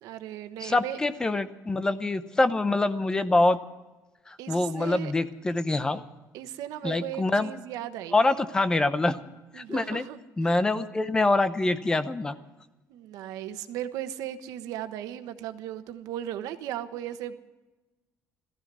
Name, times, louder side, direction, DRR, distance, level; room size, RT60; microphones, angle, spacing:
voice 1, 0.0-1.0 4.4-5.1 6.3-8.2 9.5-10.5 12.9-17.4, right 11 dB, 85° right, 9 dB, 1.2 m, -37 dB
voice 2, 0.6-3.6 4.3-6.0 6.8-7.5 8.1-9.2 9.5-10.0 10.4-12.3, left 2 dB, 10° left, 12 dB, 0.7 m, -25 dB
16.0 x 14.5 x 6.1 m, 1.1 s
cardioid pair, 170°, 6 cm